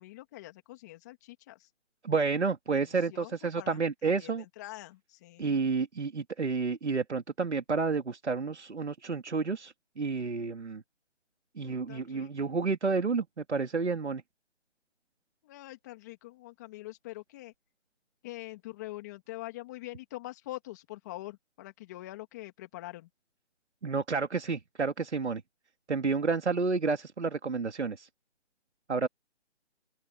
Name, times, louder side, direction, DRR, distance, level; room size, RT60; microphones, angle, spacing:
voice 1, 0.0-1.7 2.7-5.7 11.6-12.5 15.4-17.5 18.2-23.1, left 17 dB, 15° left, 2.8 m, -45 dB
voice 2, 2.0-4.4 5.4-10.8 11.6-14.2 23.8-25.4 25.9-28.1 28.9-29.1, right 4 dB, 70° right, 2.9 m, -30 dB
open air
hypercardioid pair, 170°, 35 cm